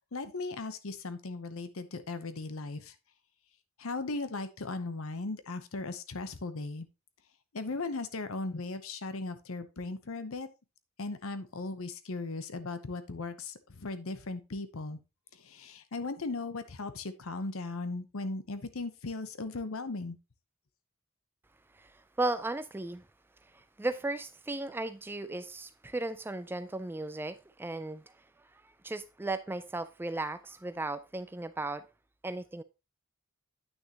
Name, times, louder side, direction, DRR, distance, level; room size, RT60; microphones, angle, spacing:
voice 1, 0.1-2.9 3.8-6.9 7.5-10.5 11.0-15.0 15.3-20.2, left 3 dB, 70° left, 0.8 m, -37 dB
voice 2, 22.2-23.0 23.8-28.0 28.8-31.8 32.2-32.6, right 2 dB, 10° right, 0.3 m, -35 dB
9.2 x 6.2 x 2.9 m
head